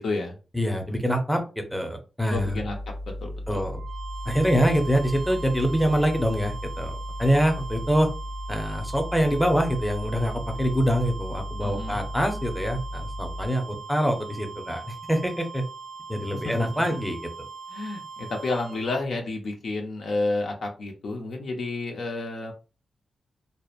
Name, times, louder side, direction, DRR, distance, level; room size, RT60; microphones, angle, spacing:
voice 1, 0.0-0.4 2.3-2.8 3.1-3.6 11.6-12.0 16.3-17.0 17.7-22.5, left 2 dB, 75° left, 2 dB, 0.6 m, -30 dB
voice 2, 0.5-2.6 3.5-3.8 4.3-8.1 8.5-15.6 16.1-17.2, equal, ahead, 3 dB, 0.6 m, -25 dB
sound 1, 2.3-13.5, left 1 dB, 50° left, 1.3 m, -36 dB
sound 2, 3.7-19.0, right 5 dB, 55° right, 0.3 m, -41 dB
2.8 x 2.1 x 2.4 m, 0.33 s
cardioid pair, 75°, 0 cm